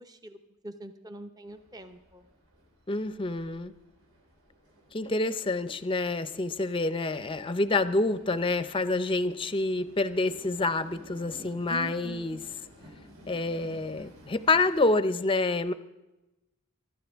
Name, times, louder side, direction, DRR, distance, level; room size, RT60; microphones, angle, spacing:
voice 1, 0.0-2.3 11.7-12.4, right 1 dB, 20° right, 8 dB, 0.7 m, -44 dB
Train, 1.5-14.9, equal, 65° right, 3.1 m, -54 dB
voice 2, 2.9-3.7 4.9-12.4 13.3-15.7, left 2 dB, 25° left, 12 dB, 0.5 m, -27 dB
24.0 x 12.0 x 3.5 m, 1.0 s
head